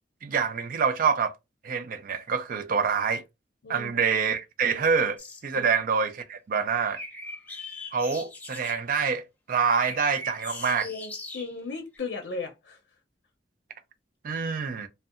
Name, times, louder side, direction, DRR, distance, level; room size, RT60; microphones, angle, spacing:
voice 1, 0.2-1.3 1.6-3.2 3.7-7.0 7.9-10.9 14.2-14.9, right 6 dB, 50° right, 0.4 m, -26 dB
sound 1, 5.2-5.4 6.6-8.7 9.5-11.6 11.9-12.0, left 2 dB, 10° left, 0.5 m, -41 dB
voice 2, 10.7-12.8, left 4 dB, 85° left, 0.5 m, -36 dB
2.7 x 2.1 x 2.4 m
head